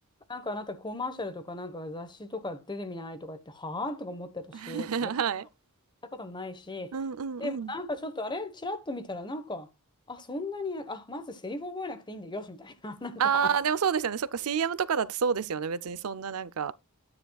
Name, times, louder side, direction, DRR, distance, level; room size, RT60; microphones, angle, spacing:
voice 1, 0.3-5.1 6.1-6.9 7.4-9.7 10.1-13.5, left 2 dB, 20° left, 1.2 m, -37 dB
voice 2, 4.5-5.5 6.9-7.7 13.2-16.7, right 7 dB, 75° right, 0.5 m, -29 dB
10.0 x 9.6 x 2.3 m
head